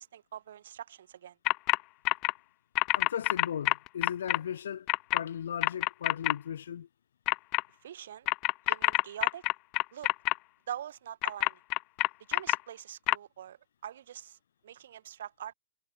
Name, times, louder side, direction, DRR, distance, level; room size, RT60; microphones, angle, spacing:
voice 1, 0.0-1.4 7.8-8.3 8.7-9.4 9.9-10.1 10.7-11.6 12.3-13.6 13.8-14.4 14.6-15.5, right 10 dB, 65° right, 6.4 m, -43 dB
sound 1, 1.5-1.8 2.0-2.3 2.8-4.4 4.9-5.2 5.6-6.3 7.3-7.6 8.3-10.3 11.2-12.6 13.1-13.2, left 24 dB, 30° left, 0.8 m, -26 dB
voice 2, 2.9-6.9, left 9 dB, 75° left, 7.5 m, -37 dB
hypercardioid pair, 160°, 0 cm